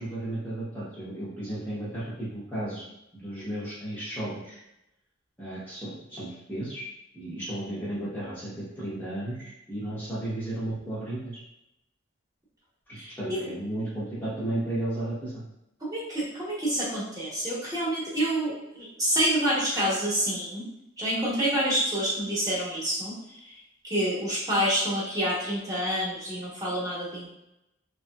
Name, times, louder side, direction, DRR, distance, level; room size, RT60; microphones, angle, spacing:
voice 1, 0.0-4.6 5.4-6.8 7.1-11.4 12.9-15.4, right 1 dB, 10° left, -10 dB, 0.7 m, -34 dB
voice 2, 12.9-13.4 15.8-20.7 21.0-23.2 23.4-23.5 23.8-27.3, right 1 dB, 20° right, -7 dB, 1.0 m, -28 dB
3.0 x 2.7 x 2.3 m, 0.85 s
head